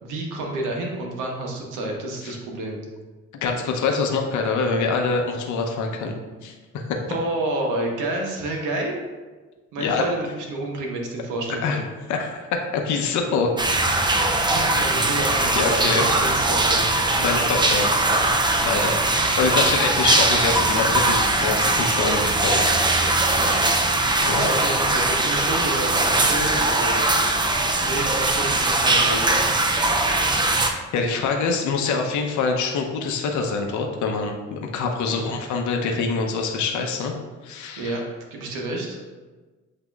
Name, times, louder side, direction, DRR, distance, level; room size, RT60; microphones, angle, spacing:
voice 1, 0.0-2.8 7.1-9.0 9.7-11.8 14.4-17.5 22.5-27.1 27.8-29.6 35.1-35.3 37.8-38.0 38.3-39.0, right 2 dB, 90° right, 0 dB, 1.0 m, -30 dB
voice 2, 3.4-7.0 9.8-10.0 11.5-11.8 12.1-12.5 12.7-13.5 15.3-16.1 17.2-17.9 18.6-22.8 24.2-24.5 30.9-37.1 37.4-38.0, left 4 dB, 75° left, 2 dB, 0.7 m, -25 dB
sound 1, 13.6-30.7, right 2 dB, 15° right, 0.4 m, -21 dB
8.0 x 2.8 x 2.3 m, 1.3 s
cardioid pair, 90°, 30 cm